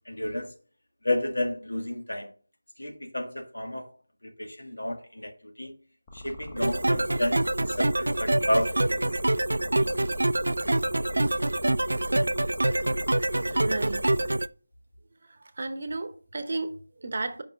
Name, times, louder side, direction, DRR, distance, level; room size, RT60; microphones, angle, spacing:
voice 1, 0.1-0.5 1.0-2.3 2.8-3.9 4.4-5.3 5.6-5.7 6.1-9.0, left 1 dB, 90° left, 1.5 m, -31 dB
sound 1, 6.1-14.3, left 1 dB, 20° left, 1.0 m, -42 dB
sound 2, 6.6-14.5, right 1 dB, 80° right, 0.3 m, -26 dB
voice 2, 13.5-14.1 15.6-17.4, right 2 dB, 50° right, 0.8 m, -33 dB
5.4 x 5.1 x 3.4 m
figure-of-eight pair, 170°, 0 cm